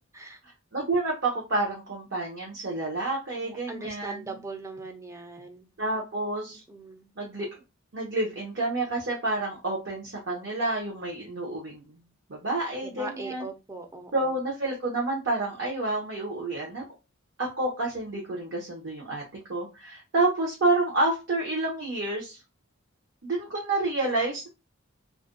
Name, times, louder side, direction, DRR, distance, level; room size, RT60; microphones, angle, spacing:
voice 1, 0.7-4.4 5.8-6.6 7.2-7.5 7.9-12.0 12.3-13.5 14.1-16.8 17.4-19.2 19.5-22.4 23.2-24.5, right 2 dB, 60° right, -2 dB, 0.8 m, -29 dB
voice 2, 3.3-5.7 6.5-7.1 12.8-14.1, right 3 dB, 15° right, 4 dB, 0.4 m, -40 dB
2.5 x 2.2 x 3.7 m, 0.27 s
head